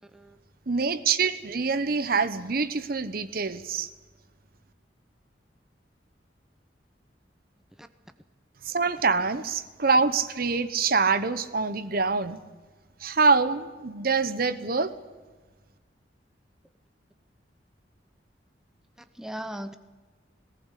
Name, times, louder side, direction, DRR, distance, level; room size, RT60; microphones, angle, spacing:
voice 1, 0.0-0.4 7.8-7.9 19.1-19.8, equal, 5° right, 9 dB, 0.7 m, -38 dB
voice 2, 0.7-3.9 8.6-12.4 13.0-14.9, right 4 dB, 55° right, 13 dB, 1.0 m, -25 dB
19.0 x 18.0 x 8.3 m, 1.3 s
head